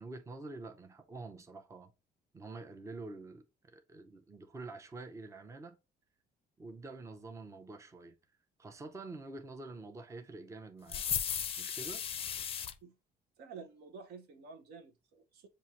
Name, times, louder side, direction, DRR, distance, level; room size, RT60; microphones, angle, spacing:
voice 1, 0.0-1.9 2.3-5.8 6.6-8.1 8.6-11.0 11.6-12.0, right 3 dB, 15° right, 0.6 m, -47 dB
sound 1, 10.9-12.7, left 8 dB, 35° left, 0.5 m, -35 dB
voice 2, 13.4-15.5, right 5 dB, 70° right, 0.9 m, -50 dB
7.0 x 2.6 x 2.8 m
cardioid pair, 110°, 17 cm